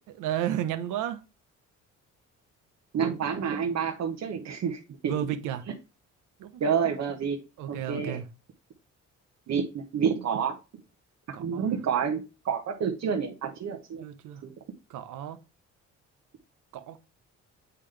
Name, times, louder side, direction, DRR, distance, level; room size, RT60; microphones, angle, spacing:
voice 1, 0.2-1.2 5.1-5.6 6.4-6.7 7.6-8.3 11.3-11.7 14.0-14.4 14.9-15.4 16.7-17.0, right 11 dB, 90° right, 0.9 m, -33 dB
voice 2, 2.9-5.1 6.6-7.4 7.7-8.2 9.5-10.6 11.4-14.0 14.4-14.5, right 7 dB, 60° right, 1.2 m, -29 dB
8.2 x 3.9 x 3.3 m
cardioid pair, 90°, 30 cm